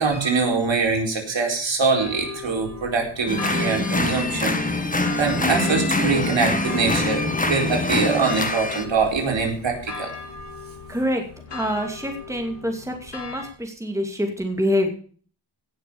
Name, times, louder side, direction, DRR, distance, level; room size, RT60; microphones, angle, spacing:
voice 1, 0.0-4.6 5.2-10.1, right 4 dB, 80° right, 1 dB, 4.6 m, -23 dB
sound 1, 1.9-13.5, left 4 dB, 65° left, 2.9 m, -39 dB
sound 2, 3.3-8.8, left 2 dB, 15° left, 1.8 m, -24 dB
voice 2, 10.9-11.2 11.5-14.9, equal, 5° right, 3 dB, 2.5 m, -26 dB
17.5 x 6.8 x 7.0 m, 0.44 s
wide cardioid pair, 110°, 45 cm